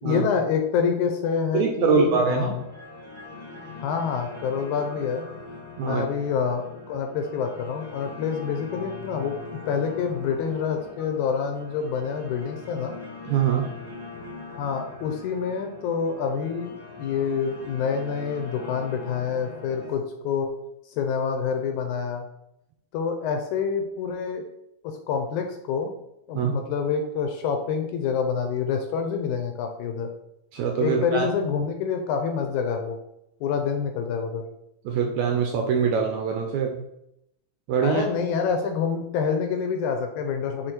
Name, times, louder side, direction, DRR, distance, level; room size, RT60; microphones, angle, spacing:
voice 1, 0.0-2.6 3.8-5.3 5.8-9.4 9.7-13.0 14.5-20.5 21.0-22.3 22.9-24.4 24.8-25.9 26.3-30.1 30.8-33.0 33.4-34.4 37.8-40.7, left 6 dB, 75° left, 5 dB, 1.9 m, -27 dB
voice 2, 1.5-2.6 5.8-6.1 13.2-13.7 26.3-26.5 30.5-31.2 34.8-36.8 37.7-38.0, right 6 dB, 80° right, 2 dB, 1.7 m, -23 dB
sound 1, 1.9-19.9, left 3 dB, 10° left, 0.9 m, -41 dB
5.1 x 4.5 x 4.4 m, 0.82 s
omnidirectional pair, 3.8 m